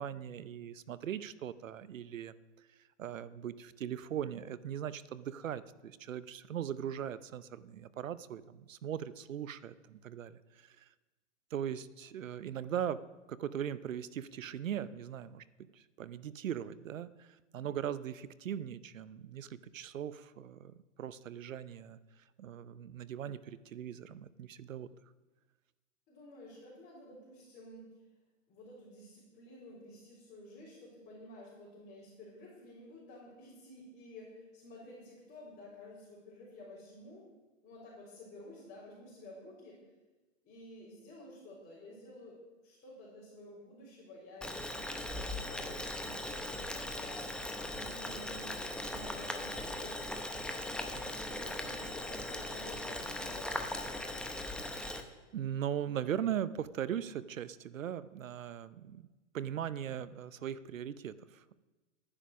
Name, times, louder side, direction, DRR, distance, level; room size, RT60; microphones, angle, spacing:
voice 1, 0.0-2.3 3.0-10.9 11.5-15.4 15.7-17.3 17.5-22.0 22.4-24.9 54.6-55.0 55.3-59.0 59.3-61.6, right 9 dB, 85° right, 16 dB, 0.8 m, -39 dB
voice 2, 26.1-27.8 28.5-37.3 37.6-39.8 40.4-50.3 50.7-54.0, left 1 dB, 25° left, -5 dB, 4.3 m, -52 dB
Boiling, 44.4-55.0, left 1 dB, ahead, 0.7 m, -39 dB
12.5 x 9.9 x 6.2 m, 1.2 s
hypercardioid pair, 125°, 38 cm